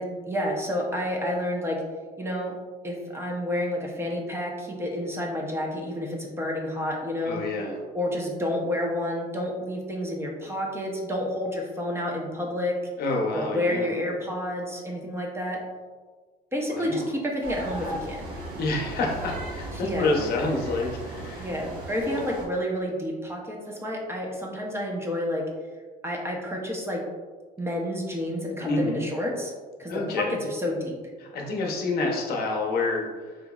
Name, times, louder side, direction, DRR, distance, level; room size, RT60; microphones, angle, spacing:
voice 1, 0.0-1.8 2.2-2.5 2.8-7.4 7.9-12.8 13.3-15.6 16.5-18.3 19.7-20.1 21.4-25.5 26.0-27.0 27.6-29.5 29.8-30.9, left 1 dB, 15° right, -1 dB, 0.7 m, -30 dB
voice 2, 7.3-7.8 13.0-13.9 16.7-17.1 18.6-21.5 28.6-29.0 29.9-30.3 31.2-33.4, left 3 dB, 65° left, -1 dB, 0.8 m, -28 dB
sound 1, 17.4-22.4, right 1 dB, 70° right, 1.0 m, -36 dB
3.8 x 2.9 x 2.3 m, 1.4 s
cardioid pair, 105°, 17 cm